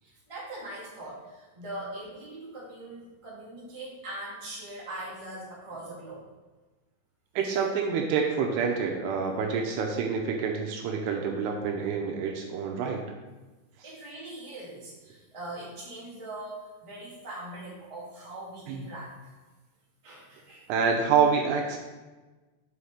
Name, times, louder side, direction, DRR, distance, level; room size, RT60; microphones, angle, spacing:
voice 1, 0.0-6.2 13.8-19.3 20.0-20.9, right 1 dB, 15° right, -8 dB, 1.2 m, -41 dB
voice 2, 7.4-13.0 18.7-18.8 20.7-21.8, right 6 dB, 80° right, 1 dB, 2.7 m, -27 dB
5.7 x 5.7 x 4.8 m, 1.2 s
omnidirectional pair, 4.9 m